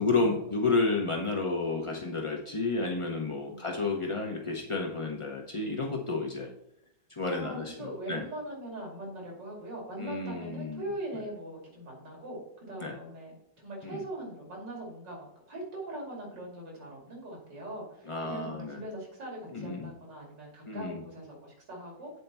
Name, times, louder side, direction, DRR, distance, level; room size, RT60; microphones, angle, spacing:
voice 1, 0.0-6.5 7.1-8.2 10.0-10.8 12.8-12.9 13.8-14.0 18.1-18.8 19.5-19.9 20.6-21.0, left 3 dB, 55° left, 1 dB, 0.3 m, -31 dB
voice 2, 7.3-22.1, right 1 dB, 85° right, -1 dB, 3.2 m, -41 dB
8.2 x 4.5 x 5.4 m, 0.79 s
omnidirectional pair, 1.9 m